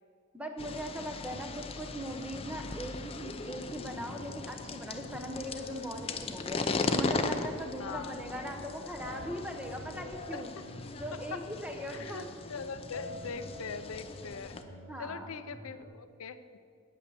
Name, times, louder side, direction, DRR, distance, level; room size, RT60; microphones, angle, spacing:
voice 1, 0.3-6.6 6.9-10.5 10.9-12.3 14.9-15.3, equal, 5° right, 4 dB, 0.8 m, -40 dB
sound 1, 0.6-14.6, left 3 dB, 25° left, 0.5 m, -38 dB
sound 2, 5.4-15.8, left 1 dB, 45° right, 1.7 m, -48 dB
voice 2, 7.8-8.1 10.3-10.4 11.3-11.4 11.9-14.6 15.0-16.6, left 5 dB, 75° left, 11 dB, 0.5 m, -42 dB
9.7 x 8.8 x 6.9 m, 2.2 s
head